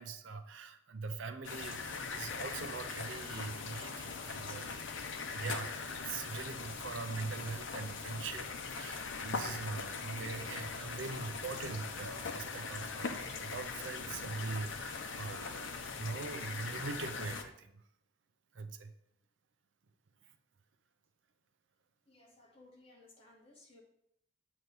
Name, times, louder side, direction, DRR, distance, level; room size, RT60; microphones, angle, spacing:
voice 1, 0.0-4.7 5.3-8.5 8.7-17.8 18.5-18.9, right 4 dB, 80° right, 9 dB, 0.5 m, -42 dB
sound 1, 1.4-17.4, left 4 dB, 80° left, 0.7 m, -41 dB
Wind instrument woodwind instrument, 9.9-14.3, left 1 dB, 10° right, 0.7 m, -60 dB
voice 2, 22.1-23.8, left 2 dB, 30° left, -2 dB, 1.4 m, -60 dB
7.9 x 3.1 x 5.4 m, 0.74 s
head